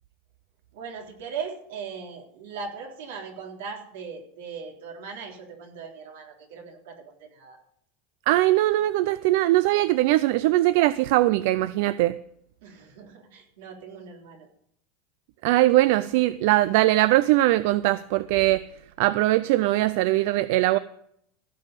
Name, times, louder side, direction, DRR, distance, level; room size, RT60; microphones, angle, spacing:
voice 1, 0.7-7.6 12.6-14.5, right 5 dB, 80° right, 0 dB, 3.5 m, -39 dB
voice 2, 8.3-12.2 15.4-18.6 19.0-20.8, right 17 dB, 60° right, 15 dB, 0.4 m, -21 dB
16.0 x 5.4 x 8.1 m, 0.71 s
supercardioid pair, 165°, 0 cm